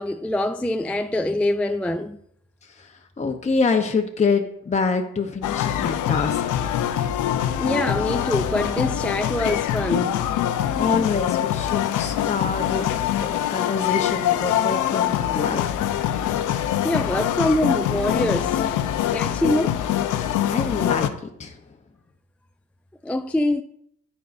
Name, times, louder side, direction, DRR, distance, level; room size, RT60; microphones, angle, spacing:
voice 1, 0.0-2.2 7.6-10.2 16.8-18.7 19.1-19.8 23.0-23.6, left 1 dB, 5° left, 0.3 m, -24 dB
voice 2, 2.6-6.7 10.7-12.8 13.2-15.9 20.5-21.1 21.4-21.6, left 4 dB, 25° left, 0.9 m, -26 dB
sound 1, 5.4-21.1, left 11 dB, 85° left, 0.7 m, -24 dB
14.5 x 5.5 x 2.6 m
cardioid pair, 90°, 30 cm